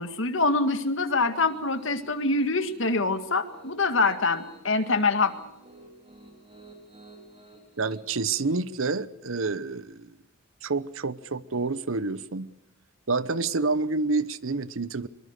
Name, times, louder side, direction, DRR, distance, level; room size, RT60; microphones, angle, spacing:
voice 1, 0.0-5.3, left 3 dB, 60° left, 1.9 m, -25 dB
Piano, 1.2-8.0, right 2 dB, 25° right, 5.2 m, -53 dB
voice 2, 7.8-10.1 10.6-12.5 13.1-15.1, right 3 dB, 70° right, 0.9 m, -28 dB
24.0 x 23.0 x 6.6 m
head